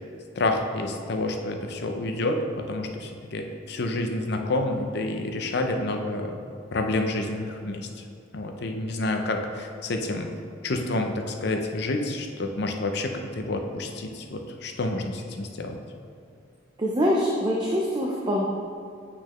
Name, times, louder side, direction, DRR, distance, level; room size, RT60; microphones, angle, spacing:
voice 1, 0.4-6.4 6.7-7.9 8.3-10.3 10.6-15.8, left 2 dB, 60° left, 4 dB, 0.6 m, -29 dB
voice 2, 16.8-18.5, equal, 25° right, -3 dB, 0.5 m, -24 dB
8.5 x 4.2 x 3.0 m, 2.3 s
head